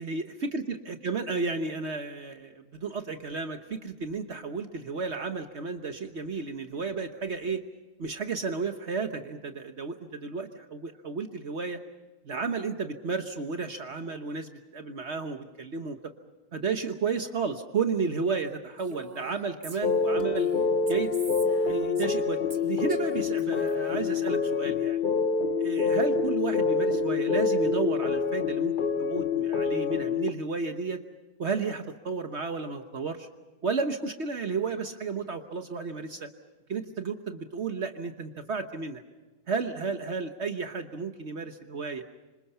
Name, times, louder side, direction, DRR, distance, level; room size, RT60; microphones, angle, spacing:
voice 1, 0.0-7.6 8.0-11.8 12.2-16.1 16.5-20.5 20.9-21.1 21.7-25.0 25.6-31.0 31.4-33.3 33.6-36.3 36.7-39.0 39.5-42.0, right 4 dB, 55° right, 6 dB, 1.4 m, -32 dB
Female speech woman speaking, 18.8-22.2 22.5-24.3, right 3 dB, 40° right, 1.9 m, -46 dB
sound 1, 19.8-30.3, left 4 dB, 40° left, 1.1 m, -26 dB
27.0 x 26.0 x 5.6 m, 1.2 s
omnidirectional pair, 1.4 m